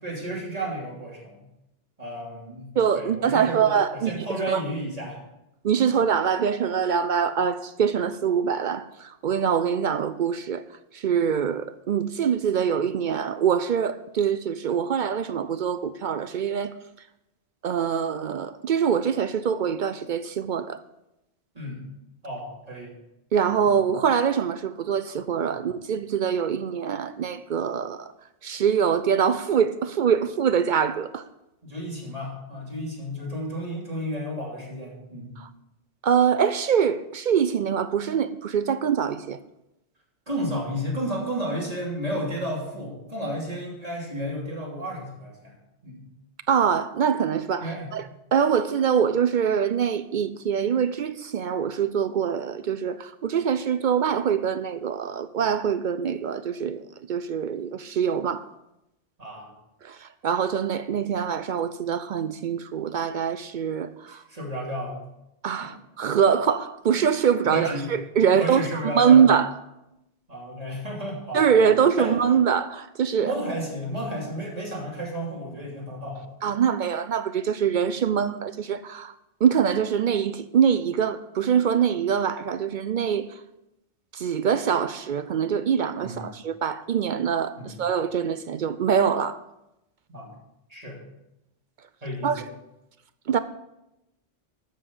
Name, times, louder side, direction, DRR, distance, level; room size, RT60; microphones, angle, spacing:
voice 1, 0.0-1.4 2.0-2.7 2.9-5.2 21.5-21.8 22.2-22.9 31.6-35.3 40.3-45.6 45.8-46.0 47.6-47.9 59.2-59.5 64.1-65.1 65.6-65.7 67.5-67.9 68.4-69.3 70.3-71.6 72.0-72.2 73.2-76.3 86.0-86.2 87.6-87.7 90.1-90.3 90.7-91.0 92.0-92.5, equal, 30° right, 3.2 m, -32 dB
voice 2, 2.8-4.1 4.5-4.6 5.6-10.7 10.9-16.7 17.6-20.8 23.3-28.1 28.4-31.3 35.4-35.5 36.0-39.4 46.5-58.5 59.8-64.2 65.4-69.5 71.3-73.3 76.4-79.1 79.4-83.3 84.1-89.4 92.2-92.4 93.3-93.4, right 7 dB, 60° right, 0.5 m, -24 dB
12.5 x 6.9 x 5.5 m
omnidirectional pair, 1.2 m